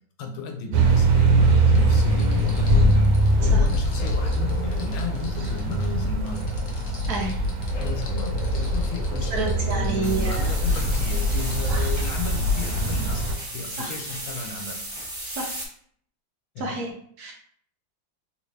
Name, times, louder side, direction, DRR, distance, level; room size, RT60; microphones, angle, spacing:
voice 1, 0.2-3.1 3.4-6.5 7.8-14.8 16.5-16.8, left 4 dB, 85° left, 3 dB, 1.4 m, -34 dB
sound 1, 0.7-13.3, right 1 dB, 85° right, 1.4 m, -22 dB
sound 2, 1.5-11.8, left 3 dB, 65° left, 0.7 m, -41 dB
voice 2, 9.3-10.5 11.7-11.9 13.8-13.9 15.4-15.5 16.6-16.9 17.2-17.3, right 2 dB, 65° right, 0 dB, 1.0 m, -29 dB
sound 3, 10.0-15.7, right 1 dB, 35° right, 0.7 m, -35 dB
3.4 x 2.7 x 3.2 m, 0.62 s
omnidirectional pair, 2.1 m